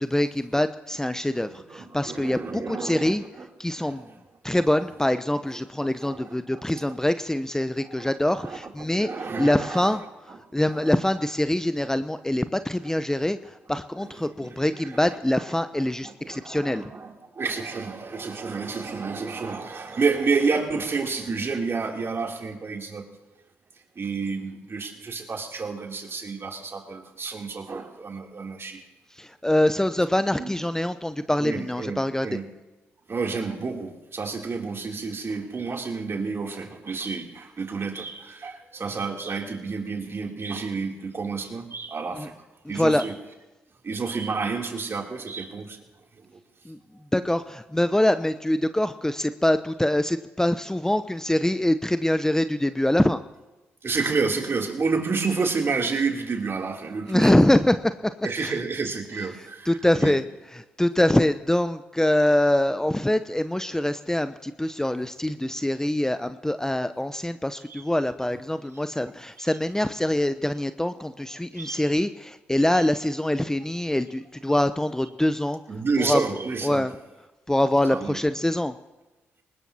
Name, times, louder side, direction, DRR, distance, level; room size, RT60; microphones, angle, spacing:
voice 1, 0.0-3.2 3.6-4.1 4.4-16.9 29.1-32.4 42.1-42.3 42.7-43.0 46.6-46.8 47.1-53.2 57.1-58.1 58.4-58.6 59.4-75.6 76.0-76.2 76.6-76.9 77.5-78.7, left 1 dB, 10° left, 11 dB, 0.8 m, -24 dB
voice 2, 1.3-3.5 3.8-4.1 6.0-6.4 6.9-7.0 8.0-8.6 9.0-10.0 10.7-10.8 14.2-14.7 16.0-23.1 23.9-28.8 30.4-30.5 31.4-32.4 33.1-42.3 42.7-43.1 43.8-45.8 46.2-46.3 53.8-57.5 58.2-60.2 67.7-67.8 71.5-71.8 75.7-76.8 77.9-78.2, right 4 dB, 45° right, 1 dB, 3.2 m, -30 dB
23.0 x 20.5 x 2.9 m, 1.1 s
hypercardioid pair, 45°, 6 cm